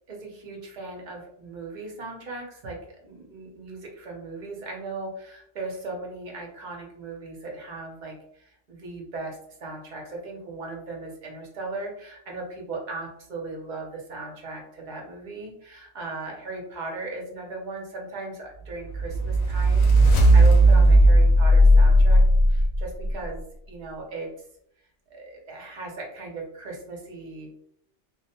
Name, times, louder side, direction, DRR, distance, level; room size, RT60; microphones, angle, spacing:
voice 1, 0.1-2.8 3.0-22.2 22.5-24.3 25.1-27.5, right 3 dB, 50° right, -1 dB, 0.6 m, -37 dB
sound 1, 18.9-23.1, right 1 dB, 80° left, 0.9 m, -16 dB
2.2 x 2.1 x 2.7 m, 0.70 s
omnidirectional pair, 1.3 m